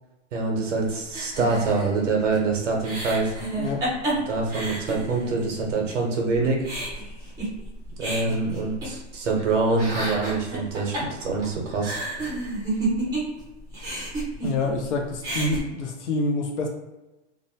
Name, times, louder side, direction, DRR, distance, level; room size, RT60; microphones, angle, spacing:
voice 1, 0.3-3.3 4.3-6.6 8.0-12.0, right 3 dB, 90° right, 1 dB, 0.9 m, -25 dB
sound 1, 1.1-5.5 5.9-6.0 6.3-9.4 9.7-13.4 13.7-14.9 15.1-15.6, right 2 dB, 10° right, 0.5 m, -31 dB
voice 2, 14.4-16.7, left 2 dB, 75° left, 2 dB, 0.8 m, -27 dB
2.6 x 2.1 x 2.7 m, 1.0 s
hypercardioid pair, 150°, 36 cm